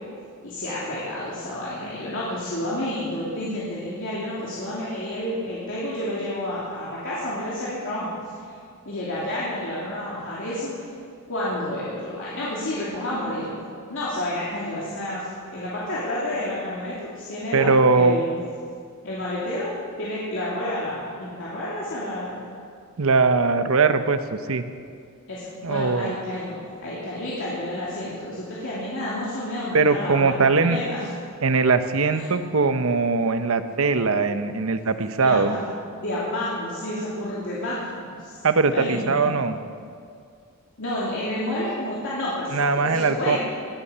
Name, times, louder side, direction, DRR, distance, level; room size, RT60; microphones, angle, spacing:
voice 1, 0.4-8.1 8.4-8.5 8.8-10.7 11.3-13.6 13.9-18.4 19.0-19.7 20.0-22.4 25.3-31.1 32.1-32.2 35.2-35.7 36.0-38.4 38.7-39.3 40.8-43.4, left 1 dB, 65° left, -8 dB, 2.8 m, -30 dB
voice 2, 17.5-18.2 23.0-24.6 25.6-26.1 29.7-30.8 31.4-35.6 38.4-39.6 42.5-43.4, right 4 dB, 70° right, 10 dB, 0.8 m, -21 dB
19.0 x 8.6 x 6.8 m, 2.3 s
head